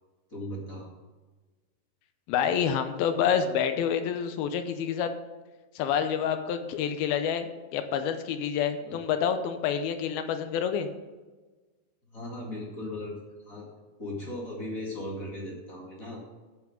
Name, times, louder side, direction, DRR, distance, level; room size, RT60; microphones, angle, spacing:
voice 1, 0.3-0.9 8.8-9.0 12.1-13.7 14.0-16.2, left 1 dB, 30° left, -3 dB, 1.8 m, -37 dB
voice 2, 2.3-5.1 5.7-10.9, left 8 dB, 85° left, 8 dB, 2.6 m, -28 dB
14.0 x 5.9 x 5.1 m, 1.3 s
omnidirectional pair, 4.3 m